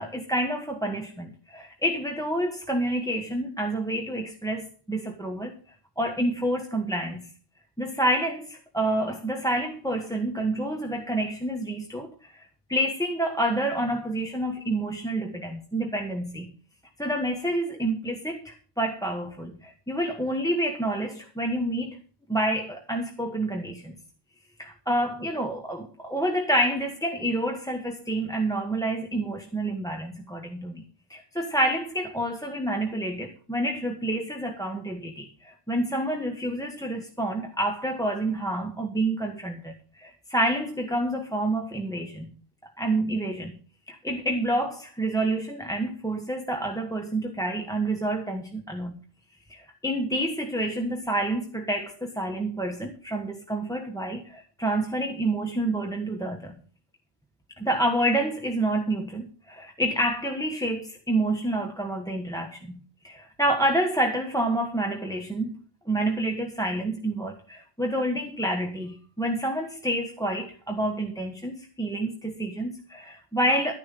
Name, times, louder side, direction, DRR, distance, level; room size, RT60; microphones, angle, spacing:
voice 1, 0.0-5.5 6.0-7.3 7.8-12.4 12.7-16.5 17.0-22.0 22.3-23.9 24.6-30.8 31.1-42.3 42.8-43.6 43.9-49.0 49.5-56.6 57.6-65.6 65.9-73.7, right 1 dB, 5° left, 3 dB, 1.2 m, -28 dB
12.5 x 10.5 x 5.3 m, 0.40 s
omnidirectional pair, 1.3 m